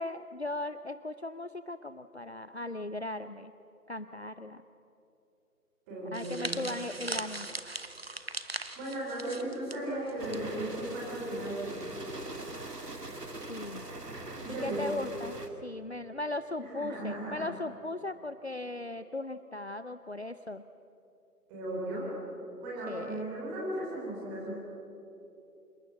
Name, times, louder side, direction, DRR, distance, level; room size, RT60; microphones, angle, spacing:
voice 1, 0.0-3.5 3.9-4.6 6.1-7.6 13.5-13.8 14.5-20.6 22.9-23.2, left 2 dB, 45° left, 11 dB, 0.6 m, -38 dB
voice 2, 5.9-6.6 8.7-11.7 14.4-14.9 16.6-17.4 21.5-22.0 22.6-24.5, right 1 dB, 10° right, -5 dB, 3.4 m, -36 dB
sound 1, 6.1-10.4 10.7-10.9 11.8-12.1, right 2 dB, 40° right, 1.0 m, -39 dB
sound 2, 10.2-15.5, right 2 dB, 75° right, 2.6 m, -42 dB
26.5 x 21.5 x 7.8 m, 2.9 s
figure-of-eight pair, 160°, 47 cm